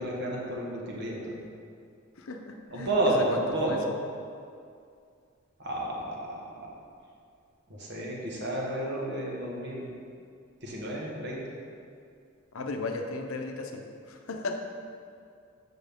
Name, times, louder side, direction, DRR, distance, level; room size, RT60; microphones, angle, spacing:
voice 1, 0.0-1.4 2.7-3.9 5.6-6.7 7.7-9.9 10.6-11.4, right 1 dB, 55° right, -3 dB, 1.4 m, -31 dB
voice 2, 2.2-3.4 3.7-3.9 12.5-14.6, left 3 dB, 80° left, 4 dB, 0.7 m, -36 dB
7.5 x 6.0 x 3.6 m, 2.3 s
head